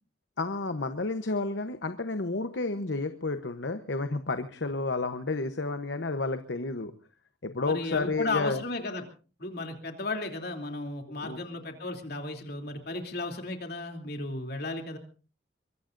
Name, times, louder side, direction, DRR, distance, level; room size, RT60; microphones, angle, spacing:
voice 1, 0.4-6.9 7.4-8.6 11.1-11.4, left 3 dB, 75° left, 9 dB, 1.0 m, -31 dB
voice 2, 7.6-9.0 9.4-15.0, left 2 dB, 60° left, 4 dB, 3.0 m, -34 dB
23.5 x 23.0 x 2.6 m, 0.37 s
head